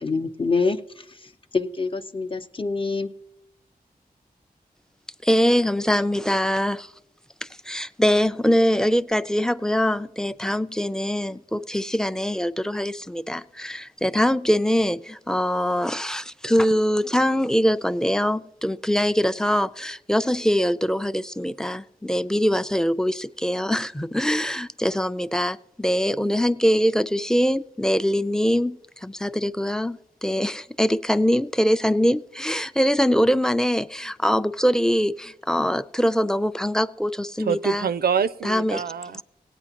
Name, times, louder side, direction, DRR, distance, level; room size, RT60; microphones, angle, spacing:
voice 1, 0.0-3.1, left 4 dB, 35° left, 0.8 m, -26 dB
voice 2, 5.2-6.9 7.4-37.9 38.4-38.8, equal, 5° left, 0.5 m, -23 dB
voice 3, 37.4-39.2, right 7 dB, 75° right, 0.4 m, -25 dB
18.0 x 8.9 x 2.9 m
cardioid pair, 40°, 16 cm